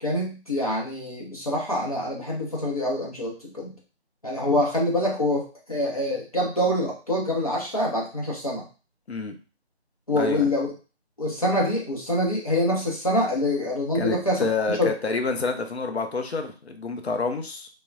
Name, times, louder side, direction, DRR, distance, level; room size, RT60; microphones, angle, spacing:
voice 1, 0.0-3.7 4.2-8.6 10.1-10.7 11.2-14.9, left 1 dB, 35° left, -4 dB, 0.7 m, -25 dB
voice 2, 10.1-10.5 13.9-17.7, left 3 dB, 70° left, 5 dB, 0.6 m, -28 dB
3.3 x 2.1 x 2.4 m, 0.34 s
figure-of-eight pair, 170°, 33 cm